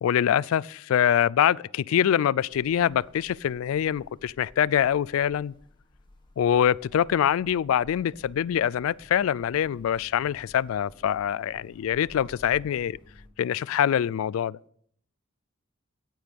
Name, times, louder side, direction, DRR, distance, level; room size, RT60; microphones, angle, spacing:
voice 1, 0.0-5.5 6.4-13.0 13.4-14.6, left 9 dB, 90° left, 0.3 m, -24 dB
sound 1, 2.5-13.3, left 1 dB, 20° left, 1.3 m, -54 dB
9.5 x 9.3 x 5.2 m
head